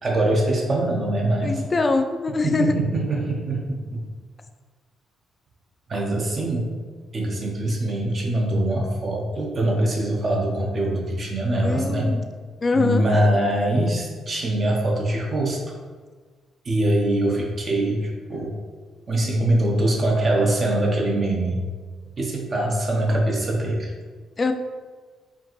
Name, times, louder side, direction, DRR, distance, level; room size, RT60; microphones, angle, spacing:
voice 1, 0.0-1.7 2.4-4.0 5.9-6.7 7.1-12.1 12.7-15.6 16.6-18.5 19.1-21.6 22.2-23.9, right 1 dB, 40° right, -1 dB, 0.7 m, -23 dB
voice 2, 1.4-2.7 11.6-12.3 12.6-13.2 24.4-24.5, left 3 dB, 30° left, 7 dB, 0.3 m, -23 dB
4.5 x 2.4 x 3.0 m, 1.5 s
cardioid pair, 90°, 0 cm